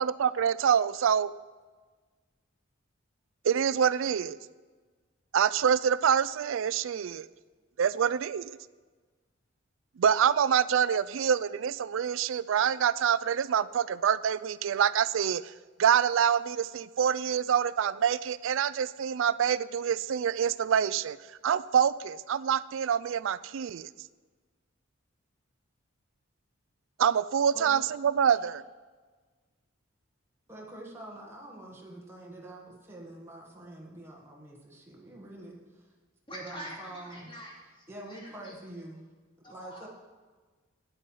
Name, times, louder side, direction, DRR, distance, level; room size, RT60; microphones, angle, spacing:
voice 1, 0.0-1.3 3.4-4.4 5.3-7.2 7.8-8.5 10.0-15.4 15.8-21.2 21.4-23.9 27.0-28.6, right 8 dB, 70° right, 17 dB, 0.4 m, -26 dB
voice 2, 30.5-35.9 36.3-37.3 37.9-39.0 39.5-39.9, right 1 dB, 10° right, -3 dB, 1.4 m, -46 dB
voice 3, 36.3-38.6 39.4-39.9, equal, 25° left, -2 dB, 2.5 m, -45 dB
9.1 x 9.1 x 5.5 m, 1.4 s
head